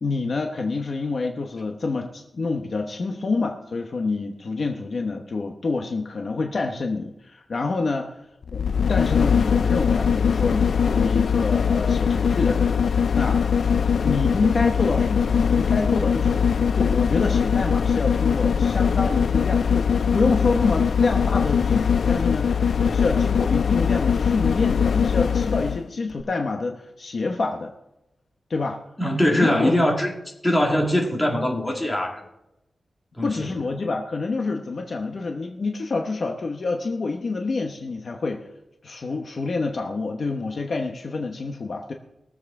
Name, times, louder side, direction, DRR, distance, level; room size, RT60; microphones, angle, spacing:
voice 1, 0.0-8.1 8.5-8.6 8.9-12.8 13.1-13.4 14.0-27.7 28.5-28.8 29.3-29.7 33.2-38.5 38.8-41.9, left 3 dB, 50° left, 0.9 m, -27 dB
sound 1, 8.4-25.8 26.2-26.3, left 7 dB, 70° left, 0.3 m, -21 dB
voice 2, 29.0-30.1 30.4-32.2 33.2-33.5, left 1 dB, 10° left, 2.0 m, -22 dB
21.5 x 7.5 x 3.7 m
wide cardioid pair, 180°, 0 cm